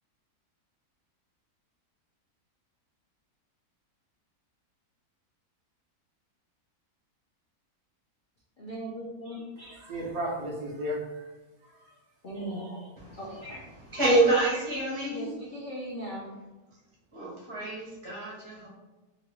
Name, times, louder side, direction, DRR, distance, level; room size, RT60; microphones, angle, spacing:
voice 1, 8.6-9.8 12.2-12.9 13.2-13.6 15.1-16.3, equal, 60° left, 0.5 m, -38 dB
voice 2, 9.6-11.3 11.6-11.9 13.1-13.2, equal, 70° right, 1.1 m, -35 dB
voice 3, 13.0-15.3 17.1-18.7, right 2 dB, 25° right, 0.7 m, -28 dB
3.1 x 2.5 x 3.0 m
omnidirectional pair, 1.6 m